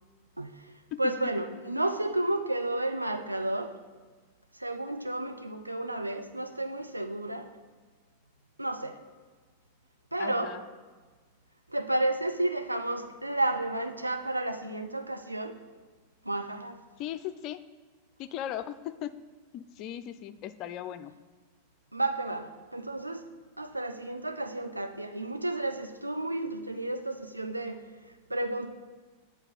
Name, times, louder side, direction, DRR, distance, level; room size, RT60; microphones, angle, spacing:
voice 1, 0.4-0.7 1.0-3.8 4.5-7.5 8.6-9.0 10.1-10.5 11.7-15.6 16.2-16.8 21.9-23.3 23.6-27.8 28.3-28.7, right 1 dB, 85° right, 6 dB, 0.5 m, -32 dB
voice 2, 10.2-10.6 17.0-17.6 18.2-19.2 19.5-21.1, left 11 dB, 40° left, 12 dB, 0.4 m, -38 dB
8.0 x 4.7 x 5.6 m, 1.4 s
figure-of-eight pair, 90°, 0 cm